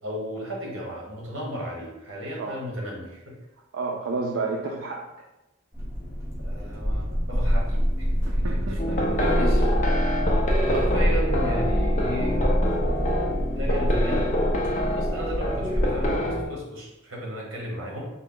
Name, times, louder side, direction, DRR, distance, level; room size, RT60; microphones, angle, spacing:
voice 1, 0.0-3.4 6.4-8.1 8.4-8.8 9.2-9.7 10.7-12.4 13.5-14.4 14.9-18.0, equal, 70° right, -2 dB, 1.1 m, -35 dB
voice 2, 3.7-5.1 8.3-9.2 10.9-11.0, right 3 dB, 85° right, -1 dB, 0.4 m, -31 dB
sound 1, 5.7-16.1, equal, 15° right, 0.9 m, -25 dB
sound 2, 8.8-16.5, equal, 35° left, 0.5 m, -26 dB
3.9 x 2.1 x 3.7 m, 0.97 s
head